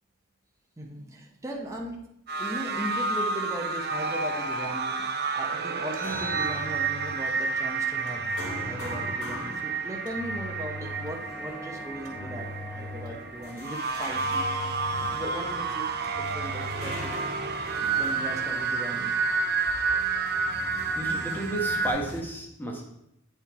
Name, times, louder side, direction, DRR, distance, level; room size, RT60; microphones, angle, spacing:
voice 1, 0.8-2.0 2.4-12.5 12.7-14.5 15.0-17.2 17.8-19.2, right 1 dB, 15° right, -1 dB, 0.8 m, -38 dB
sound 1, 2.3-21.9, right 4 dB, 45° right, 0.7 m, -30 dB
Engine, 5.8-7.3 8.1-9.3 10.1-11.3 12.1-13.3 14.0-15.4 16.0-17.3, left 2 dB, 85° right, 1.8 m, -41 dB
sound 2, 6.0-22.2, left 1 dB, 70° left, 1.6 m, -42 dB
voice 2, 20.9-22.8, right 1 dB, 10° left, 0 dB, 1.1 m, -32 dB
8.8 x 4.4 x 4.6 m, 0.78 s
head